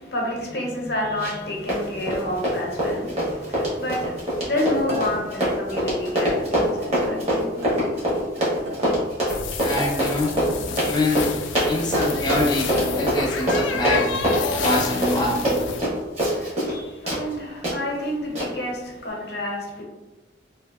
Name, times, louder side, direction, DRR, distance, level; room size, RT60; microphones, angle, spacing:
voice 1, 0.0-7.7 16.4-19.8, left 1 dB, 60° left, -2 dB, 0.7 m, -29 dB
Run, 1.2-1.4 1.7-16.8 17.1-17.2 17.6-17.7 18.3-18.5, equal, 35° right, 0.9 m, -24 dB
sound 1, 4.9-6.9 7.6-8.9 9.6-10.8 11.7-13.0 13.6-15.0, right 1 dB, 65° right, 0.6 m, -36 dB
sound 2, 9.3-15.8, left 5 dB, 85° left, 0.3 m, -30 dB
voice 2, 9.6-10.3 10.8-11.3 11.7-14.1 14.6-15.4, left 2 dB, 25° left, -3 dB, 0.6 m, -25 dB
2.7 x 2.6 x 2.2 m, 1.1 s
head